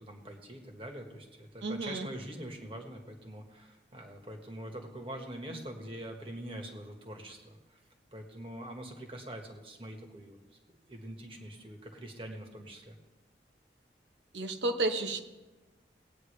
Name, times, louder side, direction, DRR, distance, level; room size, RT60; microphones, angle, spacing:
voice 1, 0.0-7.8 8.1-10.4 10.9-13.0, right 1 dB, 30° right, 2 dB, 1.5 m, -44 dB
voice 2, 1.6-2.1 14.3-15.2, right 2 dB, 90° right, 6 dB, 1.0 m, -31 dB
18.5 x 9.1 x 3.3 m, 1.1 s
head